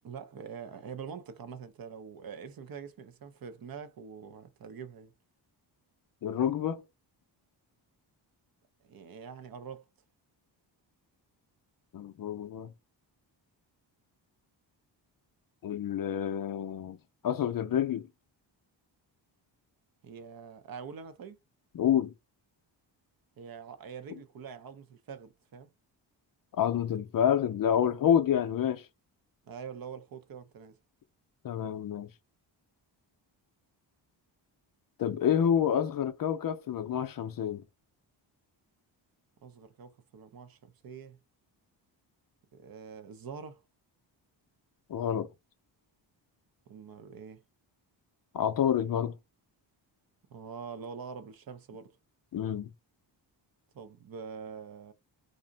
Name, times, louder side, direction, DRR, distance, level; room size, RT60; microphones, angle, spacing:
voice 1, 0.0-5.1 8.8-9.9 20.0-21.4 23.4-25.7 29.4-30.8 39.4-41.2 42.5-43.6 46.7-47.4 50.3-51.9 53.7-54.9, right 6 dB, 50° right, 0.6 m, -44 dB
voice 2, 6.2-6.8 11.9-12.7 15.6-17.0 17.2-18.0 21.7-22.1 26.6-28.9 31.4-32.1 35.0-37.6 44.9-45.3 48.3-49.1 52.3-52.7, left 9 dB, 50° left, 0.5 m, -28 dB
2.5 x 2.1 x 3.8 m
cardioid pair, 100°, 45 cm